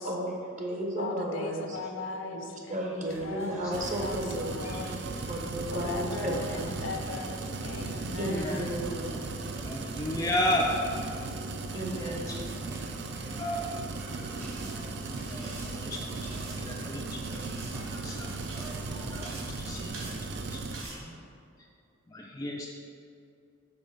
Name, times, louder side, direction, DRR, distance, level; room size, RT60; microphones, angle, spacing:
voice 1, 0.0-1.8 2.3-2.4 2.7-4.6 5.3-6.6 8.2-9.2 11.7-12.4, right 1 dB, 40° right, 0 dB, 0.9 m, -33 dB
voice 2, 1.0-5.3 5.7-8.9, left 3 dB, 65° left, 5 dB, 0.5 m, -39 dB
sound 1, 3.0-19.4, equal, 15° right, 0.7 m, -48 dB
sound 2, 3.7-20.8, right 3 dB, 55° right, 0.4 m, -37 dB
voice 3, 8.2-8.7 9.6-10.7 11.7-12.4 13.4-13.8 15.3-16.3 16.6-17.5 18.0-18.3 18.9-20.1 20.5-20.6 20.8-21.2 22.1-22.7, left 1 dB, 15° left, -1 dB, 0.4 m, -34 dB
sound 3, 14.4-21.0, right 1 dB, 85° right, 1.2 m, -46 dB
5.3 x 3.9 x 5.7 m, 2.5 s
head